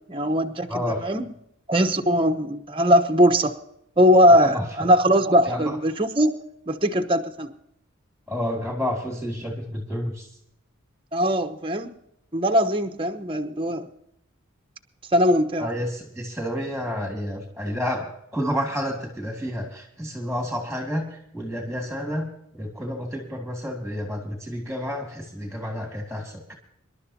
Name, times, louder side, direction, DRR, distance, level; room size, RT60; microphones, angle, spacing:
voice 1, 0.1-1.2 1.7-3.5 4.0-6.3 6.7-7.5 11.1-11.9 12.3-13.9 15.1-15.7, equal, 25° right, 6 dB, 1.0 m, -20 dB
voice 2, 0.7-1.1 4.4-4.7 5.5-5.8 8.3-10.3 15.6-22.3 22.6-26.5, equal, ahead, 1 dB, 2.3 m, -30 dB
26.5 x 12.0 x 2.8 m, 0.72 s
head